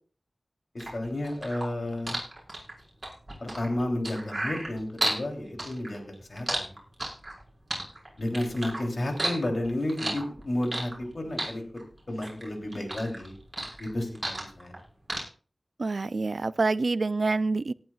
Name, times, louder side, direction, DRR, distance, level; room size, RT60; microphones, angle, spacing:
voice 1, 0.7-2.2 3.4-6.8 8.2-11.6 12.1-13.4 13.8-14.7, left 1 dB, 60° left, 3.3 m, -32 dB
sound 1, 0.8-5.2 5.6-7.4 7.7-8.8 9.1-11.1 11.4-12.5 12.7-14.8 15.1-15.2, right 1 dB, 30° right, 5.6 m, -32 dB
voice 2, 15.8-17.7, right 3 dB, 75° right, 0.4 m, -26 dB
18.5 x 10.5 x 2.4 m
wide cardioid pair, 60°, 0 cm